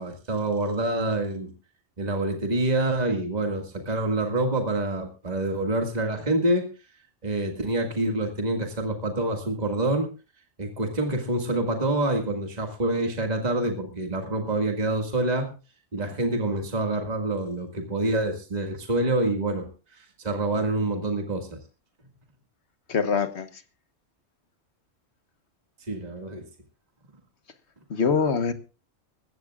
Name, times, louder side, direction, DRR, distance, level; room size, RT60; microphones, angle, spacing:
voice 1, 0.0-1.5 2.0-6.7 7.2-10.1 10.6-15.5 15.9-21.6 25.8-26.4, right 2 dB, 35° right, 3 dB, 2.1 m, -27 dB
voice 2, 22.9-23.5 27.9-28.5, left 5 dB, 60° left, 10 dB, 1.5 m, -23 dB
20.5 x 16.0 x 2.4 m, 0.33 s
omnidirectional pair, 1.3 m